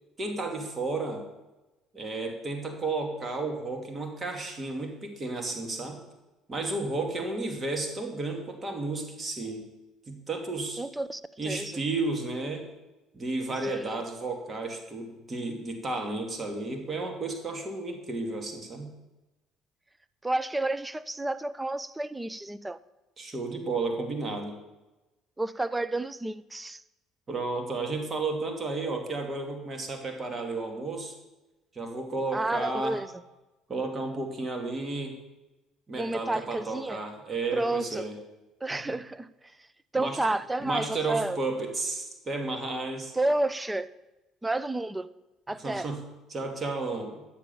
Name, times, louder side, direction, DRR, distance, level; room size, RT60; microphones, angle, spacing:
voice 1, 0.2-1.2 1.9-6.0 6.5-9.6 10.1-10.8 11.4-12.7 13.1-18.9 23.2-24.5 27.3-31.1 31.7-33.0 33.7-35.1 35.9-38.2 38.7-38.8 39.9-40.2 40.6-43.1 45.6-46.0 46.3-47.2, right 3 dB, 35° right, 3 dB, 2.6 m, -32 dB
voice 2, 10.8-11.8 13.6-14.0 20.2-22.8 25.4-26.8 32.3-33.1 36.0-37.0 37.5-38.0 38.6-39.3 39.9-41.4 43.1-43.9 44.4-45.1 45.5-45.9, right 2 dB, 15° right, 16 dB, 0.6 m, -30 dB
11.5 x 7.7 x 7.0 m, 1.0 s
hypercardioid pair, 65°, 0 cm